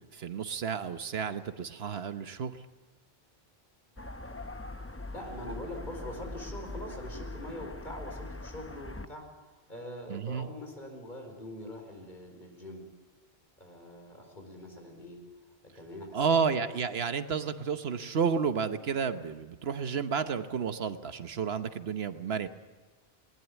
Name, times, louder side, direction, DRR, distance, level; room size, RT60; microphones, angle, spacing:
voice 1, 0.1-2.6 10.1-10.5 16.1-22.5, right 6 dB, 75° right, 10 dB, 1.2 m, -31 dB
sound 1, 4.0-9.1, left 2 dB, 15° left, 0.7 m, -42 dB
voice 2, 5.1-12.9 13.6-15.2 15.7-16.5, left 1 dB, 50° left, 3 dB, 4.9 m, -43 dB
20.5 x 18.5 x 8.1 m, 1.3 s
omnidirectional pair, 1.1 m